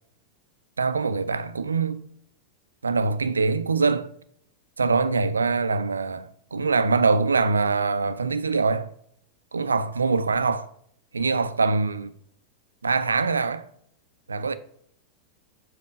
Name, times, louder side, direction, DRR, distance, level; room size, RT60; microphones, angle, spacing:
voice 1, 0.8-2.0 2.8-4.1 4.8-8.9 9.5-10.7 11.1-12.1 12.8-13.6 14.3-14.5, right 4 dB, 75° right, 0.5 m, -23 dB
7.3 x 4.3 x 6.5 m
figure-of-eight pair, 90°, 0 cm